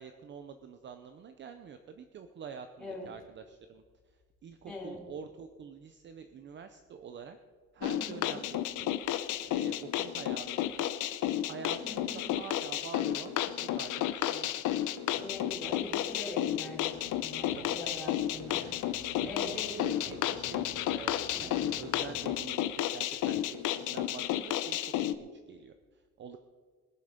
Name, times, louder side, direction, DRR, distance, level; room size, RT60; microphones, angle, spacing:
voice 1, 0.0-7.4 7.7-8.9 9.4-11.0 11.4-14.6 17.5-17.8 19.2-23.4 23.8-26.4, right 6 dB, 40° right, 8 dB, 0.6 m, -47 dB
voice 2, 4.7-5.0 8.0-8.4 11.8-12.3 15.1-18.6 18.9-19.7 21.3-21.5, left 2 dB, 5° left, -7 dB, 3.8 m, -43 dB
sound 1, 7.8-25.1, left 12 dB, 85° left, 0.7 m, -32 dB
sound 2, 15.1-22.5, right 3 dB, 55° right, 2.8 m, -53 dB
21.5 x 7.6 x 5.2 m, 1.5 s
cardioid pair, 175°, 30 cm